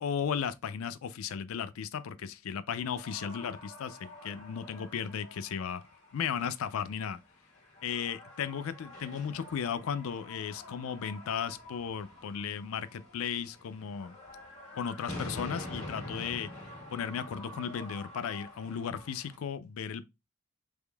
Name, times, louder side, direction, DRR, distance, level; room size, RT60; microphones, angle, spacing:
voice 1, 0.0-5.8 6.1-7.2 7.8-14.2 14.7-16.5 16.9-20.1, left 7 dB, 75° left, 0.4 m, -35 dB
sound 1, 2.8-19.3, left 1 dB, 30° left, 1.6 m, -47 dB
3.5 x 3.3 x 2.2 m
head